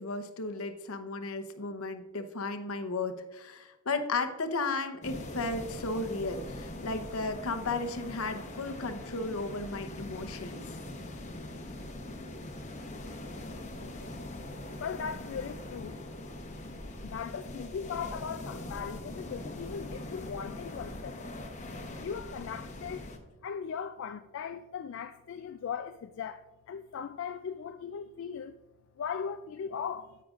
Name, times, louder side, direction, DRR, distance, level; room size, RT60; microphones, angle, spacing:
voice 1, 0.0-10.6, left 3 dB, 75° left, 0.8 m, -34 dB
sound 1, 5.0-23.2, left 1 dB, 35° left, 0.8 m, -42 dB
voice 2, 14.8-16.0 17.0-21.3 22.0-23.1 23.4-26.4 26.7-28.6 29.0-30.2, left 7 dB, 60° left, 0.3 m, -38 dB
10.0 x 8.6 x 2.4 m
head